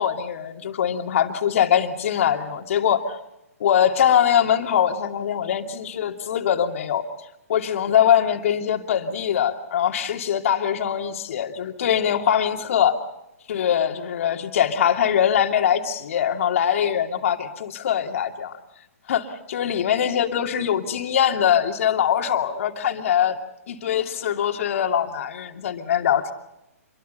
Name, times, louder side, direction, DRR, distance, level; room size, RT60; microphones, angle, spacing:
voice 1, 0.0-3.0 3.6-7.0 7.5-13.0 13.5-18.5 19.1-23.4 23.7-26.3, left 9 dB, 60° left, 4 dB, 2.6 m, -22 dB
27.5 x 23.5 x 5.5 m, 0.88 s
hypercardioid pair, 135°, 8 cm